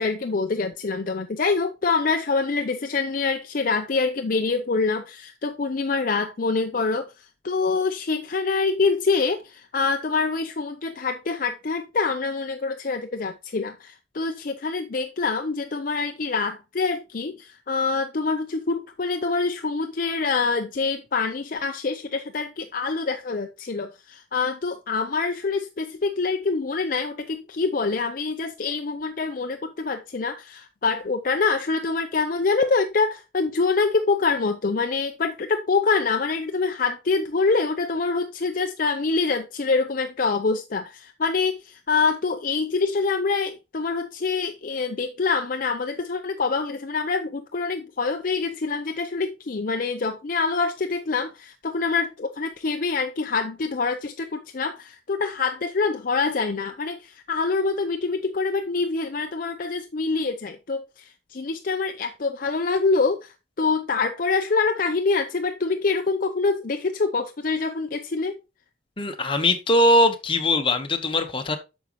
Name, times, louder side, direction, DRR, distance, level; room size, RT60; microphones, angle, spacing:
voice 1, 0.0-68.4, left 4 dB, 45° left, 0.5 m, -25 dB
voice 2, 69.0-71.6, left 1 dB, 30° left, 1.1 m, -21 dB
9.1 x 6.3 x 3.0 m
head